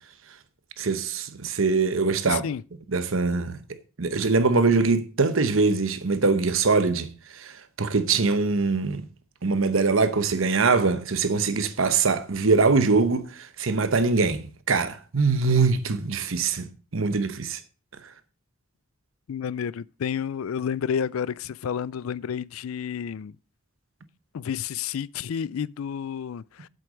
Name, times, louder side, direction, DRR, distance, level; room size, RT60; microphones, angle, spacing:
voice 1, 0.8-2.4 2.9-3.6 4.0-9.1 9.4-16.7 16.9-17.6, right 4 dB, 80° right, 0.9 m, -23 dB
voice 2, 2.3-2.6 19.3-23.3 24.3-26.7, left 8 dB, 90° left, 0.4 m, -30 dB
7.9 x 7.8 x 5.0 m
head